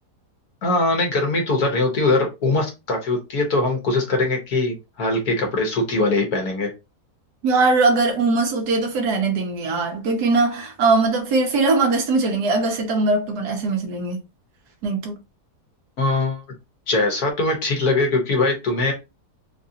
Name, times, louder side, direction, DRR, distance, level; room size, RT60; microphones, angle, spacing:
voice 1, 0.6-6.7 16.0-16.4 16.9-18.9, left 2 dB, 70° left, 1.7 m, -21 dB
voice 2, 7.4-14.2 14.8-15.1, right 3 dB, 80° right, 1.5 m, -20 dB
4.0 x 2.5 x 2.7 m
omnidirectional pair, 1.7 m